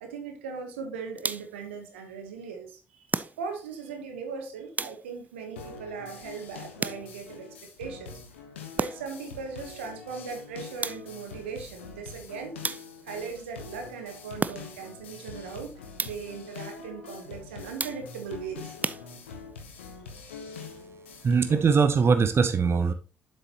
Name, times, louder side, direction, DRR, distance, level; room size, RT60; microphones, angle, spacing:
voice 1, 0.0-8.2 8.7-12.6 13.0-18.7, right 5 dB, 85° right, 5 dB, 1.1 m, -39 dB
sound 1, 1.2-1.7 3.1-3.8 4.8-5.4 6.8-7.4 8.8-9.3 10.8-11.3 12.6-13.2 14.4-15.0 16.0-16.4 17.8-18.3 18.8-19.6, right 4 dB, 25° right, 0.5 m, -34 dB
sound 2, 5.6-21.6, left 5 dB, 85° left, 1.0 m, -44 dB
voice 2, 21.2-22.9, right 5 dB, 40° right, 9 dB, 0.9 m, -21 dB
7.7 x 6.6 x 2.9 m, 0.32 s
hypercardioid pair, 45°, 6 cm